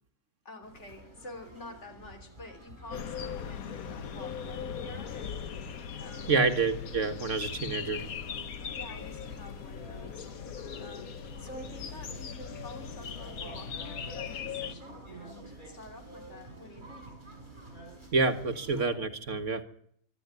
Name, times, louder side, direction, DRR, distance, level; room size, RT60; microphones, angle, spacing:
voice 1, 0.5-6.5 8.7-17.2, left 2 dB, 55° left, 6 dB, 3.6 m, -49 dB
sound 1, 0.6-18.8, right 2 dB, 35° right, 7.3 m, -49 dB
sound 2, 2.9-14.7, left 7 dB, 80° left, 1.6 m, -39 dB
voice 2, 6.3-8.0 18.1-19.6, right 4 dB, 60° right, 8 dB, 2.0 m, -28 dB
24.0 x 13.0 x 9.7 m, 0.66 s
omnidirectional pair, 1.5 m